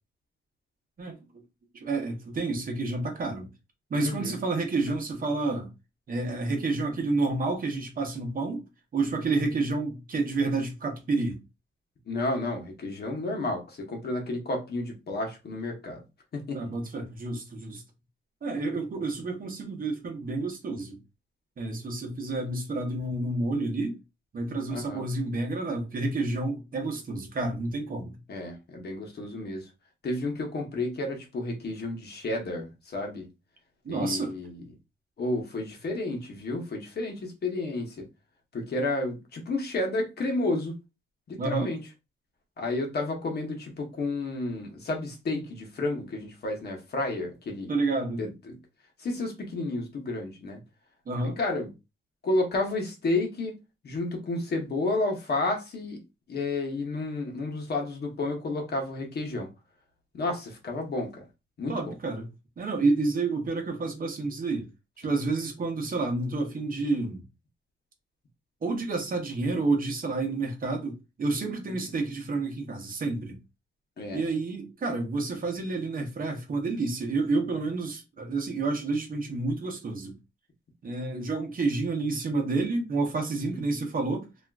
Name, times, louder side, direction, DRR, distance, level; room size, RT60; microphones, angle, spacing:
voice 1, 1.7-3.5 3.9-5.7 6.1-8.6 8.9-11.4 16.5-17.8 18.4-21.0 21.6-24.0 24.3-28.2 33.8-34.3 41.4-41.7 47.7-48.2 51.1-51.4 61.7-62.3 62.6-64.7 65.0-67.2 68.6-73.4 74.1-80.1 80.8-84.3, right 3 dB, 45° right, 0.7 m, -29 dB
voice 2, 4.0-4.4 12.1-16.0 16.3-16.7 24.7-25.0 28.3-29.7 30.0-33.3 33.9-34.6 35.2-38.0 38.5-40.7 41.3-41.8 42.6-47.7 48.2-48.6 49.0-50.6 51.4-51.7 52.2-53.6 53.8-56.0 56.3-59.5 60.1-61.2 61.6-61.9 74.0-74.2 83.5-83.6, left 2 dB, 55° left, 0.9 m, -31 dB
3.4 x 2.4 x 2.3 m
wide cardioid pair, 175°, 20 cm